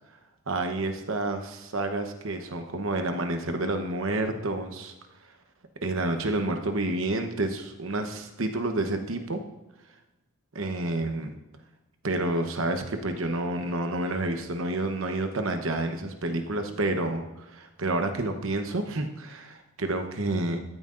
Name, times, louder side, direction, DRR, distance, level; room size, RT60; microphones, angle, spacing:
voice 1, 0.5-4.9 5.8-9.4 10.5-11.3 12.0-20.6, right 2 dB, 65° right, 6 dB, 1.0 m, -29 dB
14.0 x 9.4 x 2.6 m, 1.0 s
head